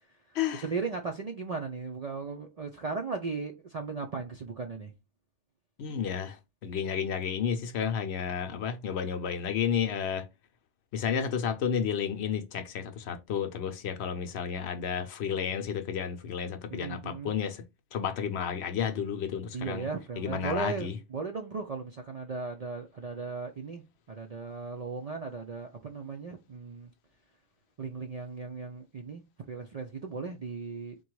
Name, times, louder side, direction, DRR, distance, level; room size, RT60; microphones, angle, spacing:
voice 1, 0.3-4.9 16.7-17.3 19.5-26.9 27.8-31.0, right 4 dB, 55° right, 0.4 m, -37 dB
voice 2, 5.8-6.4 6.6-10.2 10.9-17.6 17.9-19.9 20.2-20.9, left 7 dB, 70° left, 0.9 m, -31 dB
3.9 x 2.3 x 4.5 m
omnidirectional pair, 1.2 m